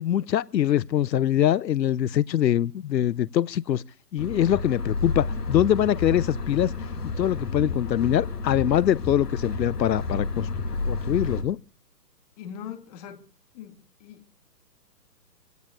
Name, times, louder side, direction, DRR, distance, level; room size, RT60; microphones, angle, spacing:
voice 1, 0.0-3.8 4.1-6.7 7.0-10.5 10.9-11.6, left 11 dB, 85° left, 0.7 m, -23 dB
sound 1, 4.2-11.4, left 3 dB, 70° left, 7.1 m, -31 dB
voice 2, 12.4-13.2 13.5-14.2, left 9 dB, 25° left, 2.0 m, -41 dB
27.0 x 17.5 x 2.4 m
hypercardioid pair, 165°, 49 cm